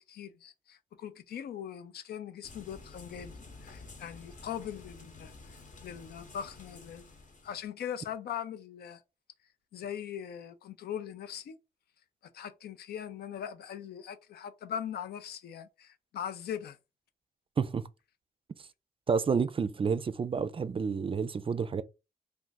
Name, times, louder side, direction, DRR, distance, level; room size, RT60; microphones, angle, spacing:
voice 1, 0.0-7.1 7.4-9.0 9.7-11.6 12.3-16.8, left 9 dB, 80° left, 0.4 m, -41 dB
sound 1, 2.4-7.6, left 3 dB, 55° left, 0.9 m, -51 dB
voice 2, 17.6-17.9 19.1-21.8, right 5 dB, 35° right, 0.4 m, -29 dB
2.5 x 2.4 x 3.9 m
cardioid pair, 55°, 16 cm